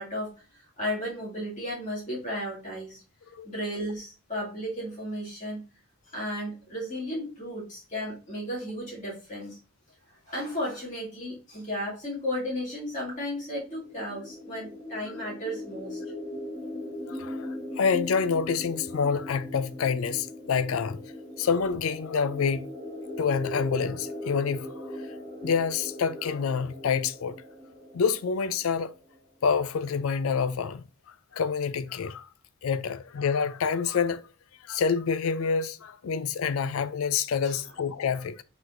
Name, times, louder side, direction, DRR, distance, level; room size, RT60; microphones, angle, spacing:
voice 1, 0.0-3.0 3.4-5.6 6.1-9.6 10.3-16.0 37.4-37.6, equal, 35° left, 2.2 m, -34 dB
sound 1, 13.5-29.2, left 1 dB, 5° left, 2.3 m, -39 dB
voice 2, 17.1-21.1 21.4-22.7 23.2-25.0 25.4-27.4 27.9-28.9 29.4-30.8 31.3-32.3 32.6-34.2 34.6-38.4, left 6 dB, 90° left, 0.4 m, -27 dB
4.6 x 4.0 x 2.6 m
head